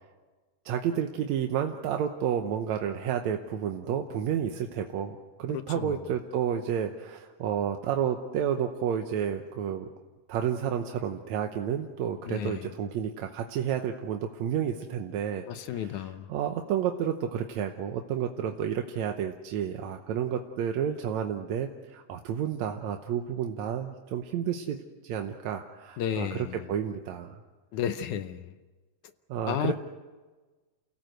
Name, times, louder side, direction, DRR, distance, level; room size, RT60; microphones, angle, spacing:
voice 1, 0.7-9.9 10.3-15.5 15.7-15.9 16.3-24.8 25.0-27.4 29.3-29.7, right 9 dB, 70° right, 4 dB, 2.0 m, -31 dB
voice 2, 5.5-6.1 12.3-12.7 15.5-16.3 26.0-26.6 27.7-28.5 29.5-29.7, left 9 dB, 70° left, 10 dB, 2.1 m, -33 dB
29.0 x 17.0 x 7.9 m, 1.3 s
omnidirectional pair, 3.8 m